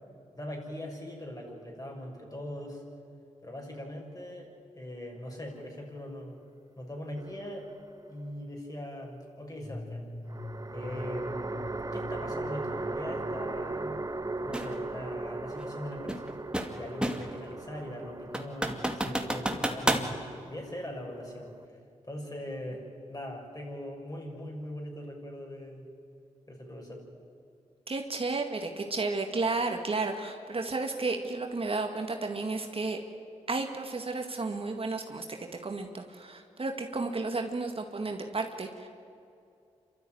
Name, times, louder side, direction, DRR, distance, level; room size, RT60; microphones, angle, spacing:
voice 1, 0.3-2.8 3.4-6.4 6.8-7.7 8.1-10.1 10.7-14.0 14.4-16.3 16.7-21.8 22.0-25.8 26.5-27.0, left 1 dB, 25° left, 0 dB, 6.6 m, -41 dB
sound 1, 7.2-8.0 10.3-21.7, right 2 dB, 25° right, 0.8 m, -38 dB
sound 2, 9.6-14.7, left 1 dB, 55° left, 6.1 m, -44 dB
sound 3, 14.5-14.7 16.1-17.4 17.8-17.9 18.3-20.1, right 1 dB, 5° right, 2.4 m, -30 dB
voice 2, 27.9-33.0 33.5-35.2 35.6-38.9, right 3 dB, 45° right, 4 dB, 2.0 m, -32 dB
27.0 x 13.5 x 9.4 m, 2.5 s
supercardioid pair, 45°, 13 cm